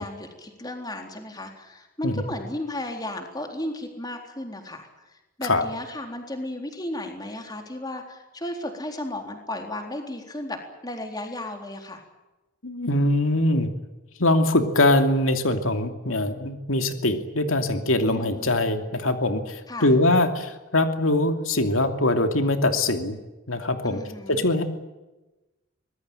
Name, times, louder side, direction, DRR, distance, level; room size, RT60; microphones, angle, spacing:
voice 1, 0.0-4.9 5.4-10.6 10.8-12.0 18.0-18.5 19.7-19.9 23.8-24.4, left 1 dB, 20° left, 4 dB, 3.9 m, -34 dB
voice 2, 12.6-13.7 14.2-23.2 23.5-24.0 24.3-24.6, left 1 dB, 90° left, 7 dB, 2.8 m, -22 dB
24.5 x 20.5 x 9.2 m, 1.1 s
head